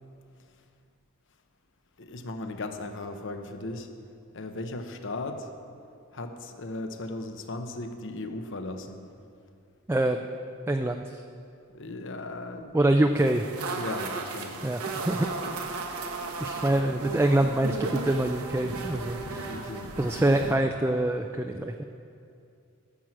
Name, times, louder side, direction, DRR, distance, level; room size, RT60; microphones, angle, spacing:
voice 1, 2.0-3.9 4.3-5.5 6.1-9.1 11.7-12.8 13.7-14.7 19.5-19.9, left 2 dB, 60° left, 7 dB, 0.9 m, -37 dB
voice 2, 9.9-10.2 10.7-11.0 12.7-13.5 14.6-15.3 16.4-19.6 20.0-21.7, right 1 dB, 10° right, 5 dB, 0.3 m, -25 dB
sound 1, 13.2-20.6, right 3 dB, 80° right, 1.1 m, -35 dB
13.5 x 7.4 x 6.2 m, 2.5 s
head